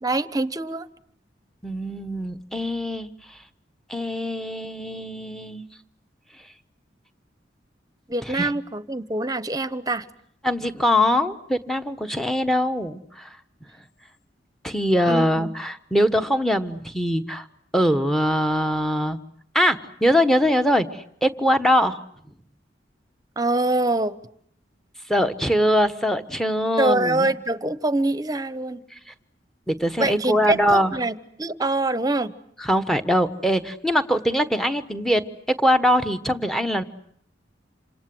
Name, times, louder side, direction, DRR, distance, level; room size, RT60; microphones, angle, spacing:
voice 1, 0.0-0.9 8.1-10.1 15.1-15.5 23.4-24.2 26.8-28.8 30.0-32.3, right 2 dB, 20° right, 14 dB, 1.1 m, -24 dB
voice 2, 1.6-3.1 3.9-5.7 8.3-8.5 10.4-13.3 14.6-17.4 17.7-19.2 19.5-22.0 25.1-27.3 29.7-30.9 32.6-35.2 35.6-36.8, equal, ahead, 10 dB, 1.3 m, -22 dB
28.0 x 26.5 x 7.9 m, 0.68 s
head